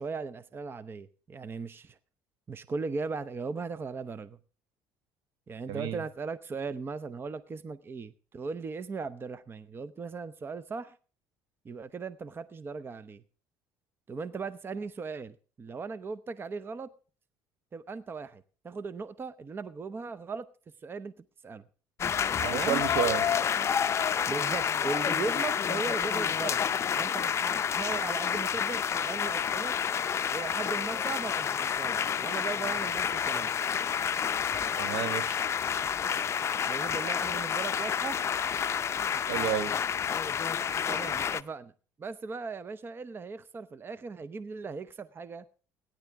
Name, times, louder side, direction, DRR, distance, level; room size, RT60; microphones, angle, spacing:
voice 1, 0.0-2.0 2.5-4.4 5.5-10.9 11.6-13.2 14.1-16.9 17.7-20.5 20.8-21.1 21.4-21.6 22.5-22.8 24.3-26.7 27.0-29.8 30.3-33.5 36.7-38.2 40.9-41.7 42.0-45.4, right 4 dB, 30° right, 0.8 m, -38 dB
voice 2, 5.7-6.0 22.4-23.2 34.8-35.3 39.3-39.7, right 9 dB, 70° right, 1.3 m, -31 dB
sound 1, 22.0-41.4, left 8 dB, 40° left, 0.5 m, -29 dB
17.0 x 10.5 x 3.5 m
supercardioid pair, 90°, 7 cm